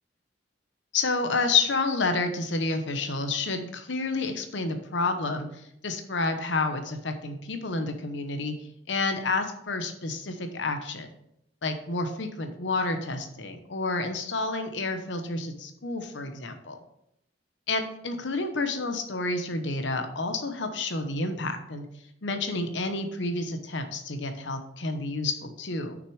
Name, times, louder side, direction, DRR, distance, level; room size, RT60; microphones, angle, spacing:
voice 1, 0.9-8.5 8.9-11.1 11.6-16.8 17.7-21.8 22.2-26.0, left 3 dB, 75° left, 7 dB, 0.9 m, -29 dB
6.6 x 6.1 x 4.8 m, 0.76 s
head